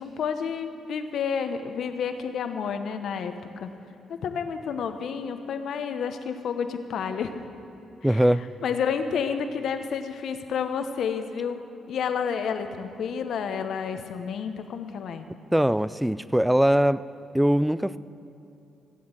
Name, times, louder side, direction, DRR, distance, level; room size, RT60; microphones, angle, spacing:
voice 1, 0.0-3.3 3.6-3.7 4.1-7.3 8.0-8.3 8.6-11.6 11.9-15.3, left 6 dB, 70° left, 8 dB, 1.1 m, -30 dB
voice 2, 8.0-8.4 15.5-17.0 17.3-18.0, equal, 5° right, 17 dB, 0.4 m, -21 dB
17.0 x 8.6 x 7.6 m, 2.9 s
cardioid pair, 95°, 0 cm